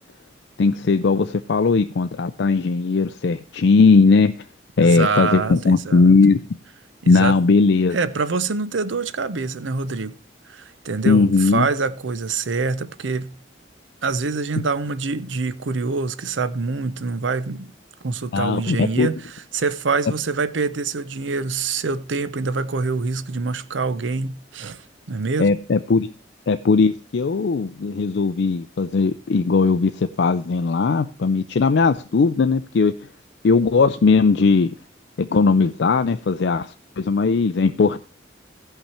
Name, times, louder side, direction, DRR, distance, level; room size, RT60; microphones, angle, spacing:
voice 1, 0.6-4.3 4.8-6.4 7.1-8.0 11.1-11.7 18.3-19.1 25.4-26.1 26.5-32.9 33.4-34.7 35.2-38.0, left 4 dB, 65° left, 0.4 m, -18 dB
voice 2, 4.8-6.1 7.0-7.4 7.9-10.1 10.5-13.4 14.0-17.7 18.0-19.2 19.5-25.5, right 4 dB, 90° right, 0.7 m, -25 dB
16.0 x 5.7 x 4.3 m
head